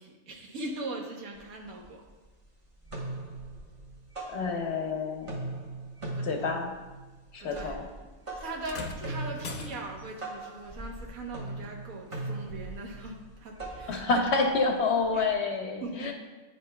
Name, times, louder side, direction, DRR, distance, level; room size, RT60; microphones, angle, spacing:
voice 1, 0.0-2.0 6.1-6.6 7.4-7.8 8.3-14.5 15.1-15.3 15.8-16.1, right 2 dB, 85° right, -1 dB, 1.5 m, -40 dB
sound 1, 1.4-1.5 1.8-2.4 2.7-4.9 5.2-15.3, right 2 dB, 25° right, 0.9 m, -40 dB
voice 2, 4.3-5.4 6.2-6.7 7.3-7.8 13.9-16.1, left 4 dB, 60° left, 3 dB, 0.8 m, -28 dB
sound 2, 8.6-10.2 11.6-11.8 12.7-12.8, left 4 dB, 80° left, 0.3 m, -41 dB
9.8 x 5.4 x 2.2 m, 1.2 s
omnidirectional pair, 1.4 m